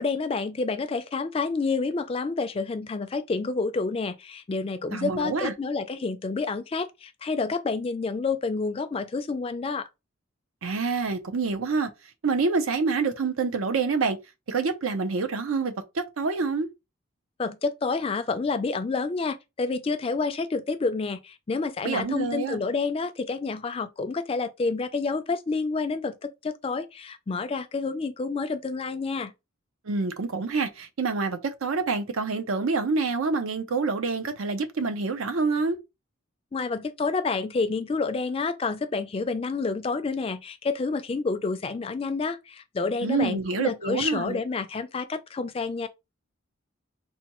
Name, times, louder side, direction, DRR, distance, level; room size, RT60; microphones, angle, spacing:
voice 1, 0.0-9.9 17.4-29.3 36.5-45.9, left 4 dB, 30° left, 0.3 m, -29 dB
voice 2, 4.9-5.5 10.6-11.9 12.2-14.2 14.5-16.7 21.8-22.6 29.8-35.8 43.0-44.4, right 4 dB, 85° right, 0.6 m, -27 dB
4.1 x 2.2 x 2.9 m
head